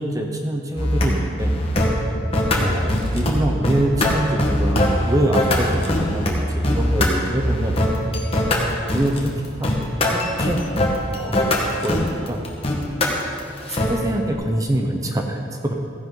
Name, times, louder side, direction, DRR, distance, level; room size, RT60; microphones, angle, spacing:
voice 1, 0.0-1.6 2.6-7.8 8.9-10.6 11.2-12.4 13.6-15.7, right 1 dB, 20° right, 2 dB, 0.8 m, -25 dB
sound 1, 0.8-1.1 1.4-1.9 2.3-3.3 3.6-6.3 6.6-7.1 7.4-13.9, left 1 dB, 30° left, 1.5 m, -21 dB
15.0 x 10.5 x 3.9 m, 2.3 s
head